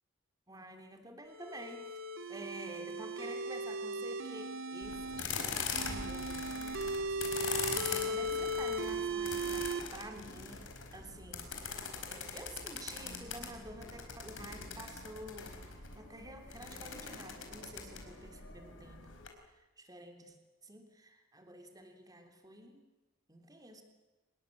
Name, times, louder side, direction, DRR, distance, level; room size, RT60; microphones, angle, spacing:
voice 1, 0.5-1.9 2.3-6.6 7.6-10.7 10.9-11.5 12.1-15.7 15.9-19.0 19.5-20.4 20.6-22.8 23.3-23.8, right 1 dB, 20° right, 5 dB, 3.2 m, -49 dB
sound 1, 1.3-5.2 5.7-9.8, right 1 dB, 80° right, 3.6 m, -37 dB
sound 2, 4.8-19.3, left 5 dB, 70° left, 4.7 m, -42 dB
26.0 x 21.0 x 8.6 m, 1.1 s
head